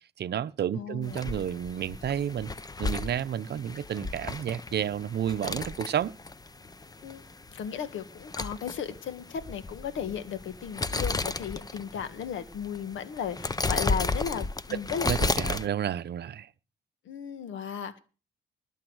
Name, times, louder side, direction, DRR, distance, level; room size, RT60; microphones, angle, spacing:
voice 1, 0.2-2.5 2.8-6.1 14.7-14.8 15.1-16.5, right 9 dB, 55° right, 0.8 m, -31 dB
voice 2, 0.7-1.2 7.0-7.3 7.5-15.1 17.0-18.0, left 8 dB, 75° left, 1.7 m, -35 dB
sound 1, 1.0-15.7, left 3 dB, 20° left, 0.9 m, -33 dB
20.0 x 7.4 x 6.3 m
cardioid pair, 90°, 20 cm